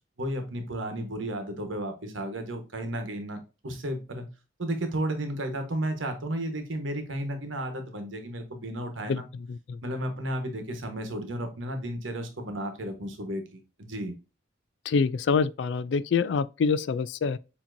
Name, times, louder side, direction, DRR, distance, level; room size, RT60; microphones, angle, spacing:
voice 1, 0.2-4.3 4.6-9.3 9.8-14.1, right 1 dB, 90° right, 1.2 m, -33 dB
voice 2, 14.9-17.4, left 5 dB, 65° left, 0.3 m, -25 dB
7.1 x 2.9 x 2.6 m
head